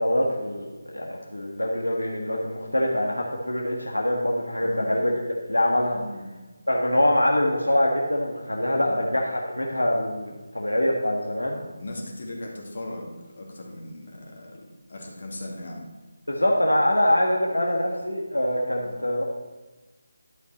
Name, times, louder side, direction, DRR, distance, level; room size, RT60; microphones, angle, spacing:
voice 1, 0.0-5.1 5.5-6.0 6.7-11.6 16.3-19.2, left 1 dB, 85° left, -1 dB, 1.4 m, -24 dB
voice 2, 4.6-5.0 5.9-6.3 8.8-9.0 11.6-14.6 14.9-15.9 18.8-19.0, left 1 dB, 50° left, -1 dB, 2.4 m, -38 dB
12.0 x 5.6 x 4.1 m, 1.2 s
figure-of-eight pair, 155°, 0 cm